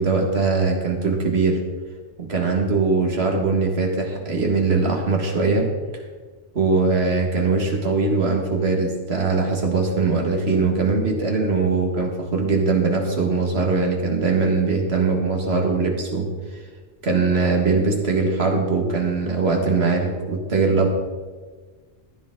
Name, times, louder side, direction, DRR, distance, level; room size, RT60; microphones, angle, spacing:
voice 1, 0.0-1.6 2.2-5.7 6.6-16.3 17.0-20.9, right 4 dB, 55° right, 1 dB, 2.0 m, -21 dB
15.0 x 10.0 x 3.8 m, 1.4 s
omnidirectional pair, 1.3 m